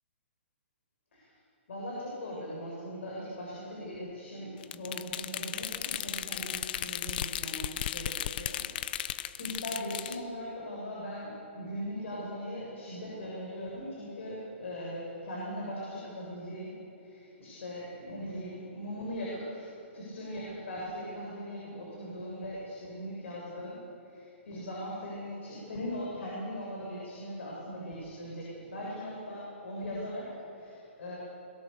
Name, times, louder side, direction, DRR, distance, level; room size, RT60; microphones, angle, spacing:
voice 1, 1.7-8.7 9.0-16.7 17.0-31.2, equal, 70° left, -4 dB, 7.4 m, -40 dB
sound 1, 4.6-10.2, left 11 dB, 45° left, 0.7 m, -35 dB
22.5 x 22.0 x 7.0 m, 2.8 s
hypercardioid pair, 155°, 7 cm